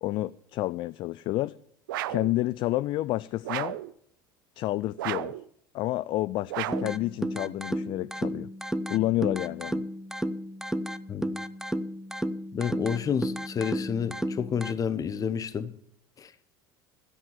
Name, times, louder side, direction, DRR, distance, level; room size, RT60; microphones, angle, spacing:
voice 1, 0.0-1.5 2.1-3.8 4.6-5.4 5.7-8.5 8.9-9.8, left 16 dB, 45° left, 0.3 m, -29 dB
sound 1, 1.9-2.3 3.4-3.9 5.0-5.5 6.5-7.0, right 14 dB, 70° right, 0.5 m, -33 dB
sound 2, 6.7-14.7, equal, 5° right, 0.6 m, -33 dB
voice 2, 12.5-15.7 16.2-16.3, left 7 dB, 30° left, 0.9 m, -29 dB
13.0 x 7.2 x 5.6 m
figure-of-eight pair, 70°, 12 cm